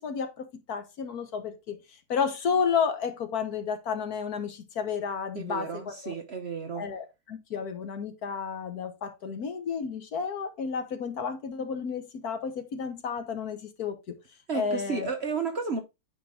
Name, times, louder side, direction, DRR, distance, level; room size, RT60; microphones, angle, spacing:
voice 1, 0.0-1.8 2.1-6.1 6.7-14.1 14.5-15.1, left 6 dB, 65° left, 1.6 m, -31 dB
voice 2, 5.3-6.9 14.5-15.8, right 5 dB, 45° right, 1.0 m, -32 dB
9.5 x 4.5 x 3.7 m
omnidirectional pair, 1.8 m